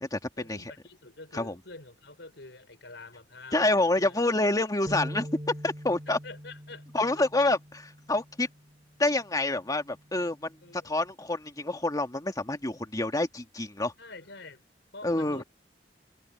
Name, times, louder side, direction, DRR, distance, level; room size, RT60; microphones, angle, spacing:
voice 1, 0.4-4.2 6.1-6.9 10.6-10.9 14.0-14.6 14.9-15.4, left 3 dB, 75° left, 5.3 m, -47 dB
voice 2, 3.5-5.3 5.6-6.2 6.9-8.5 9.0-13.9 15.0-15.4, left 2 dB, 20° left, 2.1 m, -27 dB
sound 1, 4.9-11.1, equal, 30° right, 7.3 m, -44 dB
head